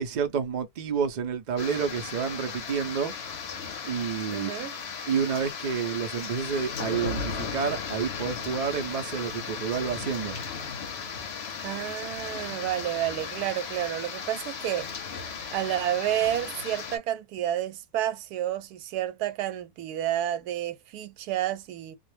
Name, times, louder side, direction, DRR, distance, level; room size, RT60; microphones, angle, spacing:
voice 1, 0.0-3.1 3.8-4.7 5.1-10.4, right 6 dB, 65° right, 0.4 m, -29 dB
sound 1, 1.6-17.0, left 6 dB, 55° left, 0.8 m, -36 dB
voice 2, 4.3-4.7 11.6-14.9 15.5-22.0, right 12 dB, 90° right, 1.1 m, -30 dB
2.5 x 2.1 x 3.1 m
omnidirectional pair, 1.6 m